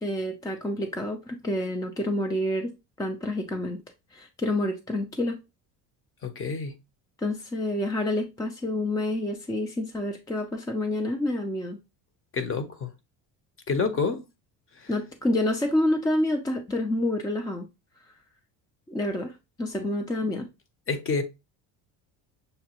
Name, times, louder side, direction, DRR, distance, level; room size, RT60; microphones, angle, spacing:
voice 1, 0.0-2.7 3.0-3.8 4.1-5.4 7.2-11.8 14.9-17.7 18.9-19.3 19.6-20.5, left 1 dB, 10° left, 0.4 m, -28 dB
voice 2, 6.2-6.7 12.3-12.9 13.7-14.3 14.8-14.9 19.7-19.8 20.9-21.2, left 4 dB, 30° left, 0.7 m, -28 dB
6.6 x 2.2 x 2.9 m
supercardioid pair, 100°, 43 cm